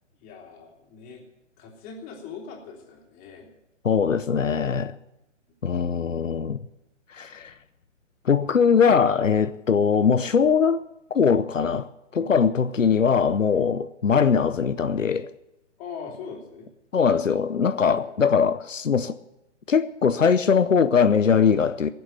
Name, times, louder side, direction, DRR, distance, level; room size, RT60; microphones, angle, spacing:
voice 1, 0.2-1.2 1.6-3.5 12.1-12.3 13.5-13.7 15.8-16.7 17.7-18.1, left 5 dB, 20° left, 3.4 m, -41 dB
voice 2, 3.8-4.9 5.6-6.6 7.1-7.5 8.2-10.8 11.1-15.3 16.9-19.2 19.7-21.9, left 6 dB, 90° left, 0.8 m, -21 dB
17.0 x 7.8 x 9.4 m
figure-of-eight pair, 135°, 37 cm